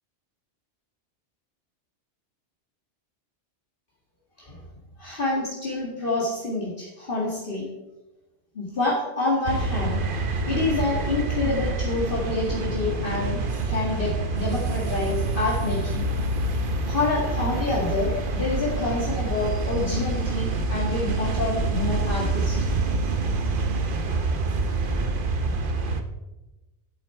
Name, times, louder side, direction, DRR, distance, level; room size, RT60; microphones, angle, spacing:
voice 1, 5.0-7.7 8.5-10.0 10.5-16.1 16.9-22.6, left 3 dB, 50° left, -5 dB, 2.2 m, -27 dB
sound 1, 9.5-26.0, right 3 dB, 50° right, 1.1 m, -26 dB
12.0 x 8.3 x 4.4 m, 1.0 s
omnidirectional pair, 1.2 m